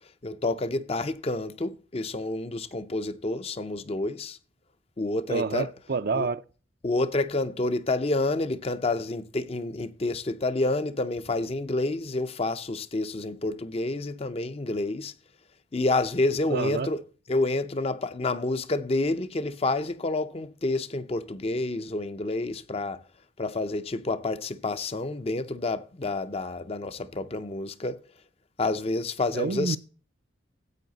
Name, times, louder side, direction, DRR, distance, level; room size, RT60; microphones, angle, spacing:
voice 1, 0.2-4.4 5.0-5.7 6.1-6.3 6.8-15.1 15.7-17.0 17.3-23.0 23.4-28.0 28.6-29.8, left 2 dB, 30° left, 0.5 m, -29 dB
voice 2, 5.3-6.4 16.5-16.9 29.3-29.8, right 4 dB, 50° right, 0.5 m, -28 dB
13.5 x 8.5 x 4.0 m
head